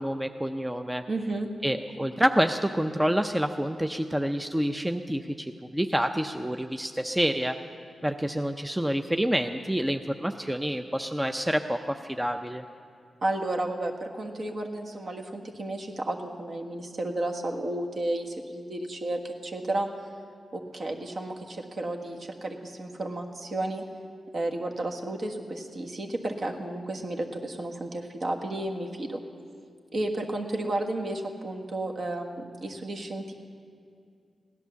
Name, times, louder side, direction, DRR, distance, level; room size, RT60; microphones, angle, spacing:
voice 1, 0.0-1.0 1.6-7.6 8.0-12.6, equal, 10° right, 7 dB, 0.5 m, -28 dB
voice 2, 1.1-1.5 13.2-19.9 20.5-23.8 24.3-29.2 29.9-33.3, right 1 dB, 55° right, 2 dB, 1.5 m, -32 dB
16.5 x 11.0 x 7.0 m, 2.4 s
wide cardioid pair, 90°, 0 cm